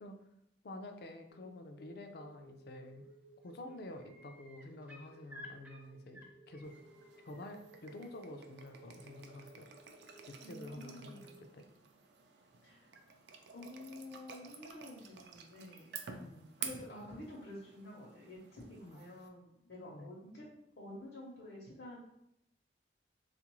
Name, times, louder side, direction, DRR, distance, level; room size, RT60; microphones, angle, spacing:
voice 1, 0.6-3.1 3.4-6.8 7.2-9.7 10.3-11.6 16.2-16.5 18.8-19.0 19.9-20.1, left 1 dB, 60° left, 6 dB, 0.4 m, -49 dB
sound 1, 1.3-11.4, right 2 dB, 60° right, 0.8 m, -60 dB
sound 2, 2.8-3.1 3.4-7.5 9.2-9.3, left 1 dB, 10° right, 0.4 m, -56 dB
sound 3, 6.6-19.3, right 6 dB, 75° right, 0.4 m, -51 dB
voice 2, 10.4-11.4 12.6-12.9 13.5-15.9 16.6-20.5 20.8-22.0, left 1 dB, 75° left, -5 dB, 0.8 m, -49 dB
3.6 x 2.4 x 3.0 m, 0.78 s
head